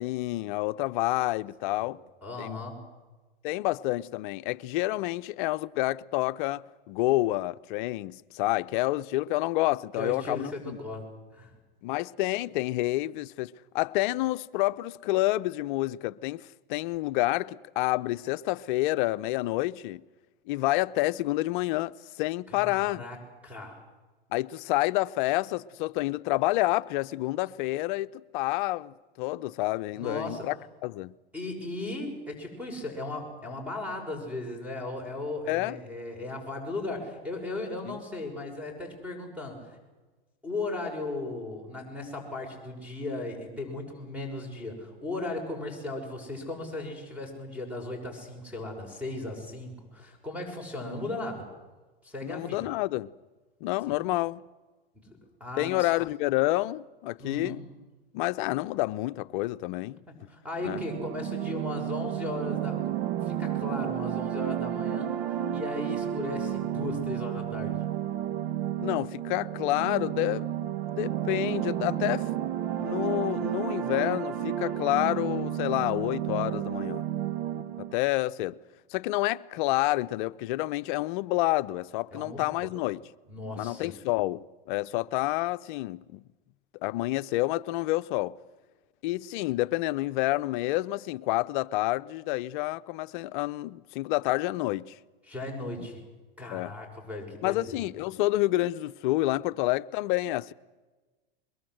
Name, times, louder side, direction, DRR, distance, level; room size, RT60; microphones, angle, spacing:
voice 1, 0.0-2.0 2.4-2.6 3.4-10.8 11.8-20.0 20.5-23.0 24.3-30.6 30.8-31.1 35.5-35.8 37.9-38.0 52.2-53.1 53.6-54.4 55.6-57.6 58.1-60.0 60.6-60.8 68.8-70.7 71.0-72.5 72.8-77.0 77.8-78.6 78.9-83.0 83.6-86.2 86.8-88.4 89.0-94.9 95.8-95.9 96.5-96.7 97.4-100.5, left 18 dB, 55° left, 0.8 m, -29 dB
voice 2, 2.2-2.8 9.9-11.5 22.5-23.2 23.4-23.8 29.9-30.5 31.3-39.8 40.4-51.5 52.0-52.7 54.9-55.9 57.2-57.6 60.1-62.8 63.2-65.1 65.5-67.8 82.1-82.5 83.3-83.9 95.3-96.0 96.4-97.8, left 2 dB, 5° right, 6.3 m, -36 dB
sound 1, 60.6-78.0, right 11 dB, 65° right, 1.6 m, -32 dB
22.5 x 22.5 x 7.9 m
hypercardioid pair, 115°, 30 cm